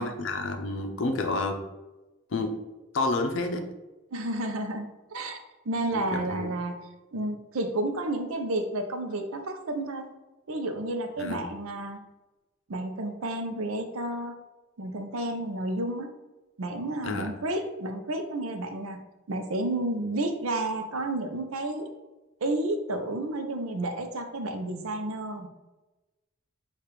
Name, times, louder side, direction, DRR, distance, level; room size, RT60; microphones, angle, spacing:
voice 1, 0.0-1.6 2.3-2.6 2.9-3.6 5.9-6.5 11.2-11.4 17.0-17.3, left 2 dB, 65° left, 5 dB, 0.5 m, -29 dB
voice 2, 4.1-5.4 5.7-6.8 7.1-10.1 10.5-12.0 12.7-14.4 14.8-16.1 16.6-19.0 19.3-21.9 22.4-25.5, right 1 dB, 85° right, 6 dB, 0.6 m, -31 dB
6.6 x 2.5 x 3.0 m, 1.1 s
head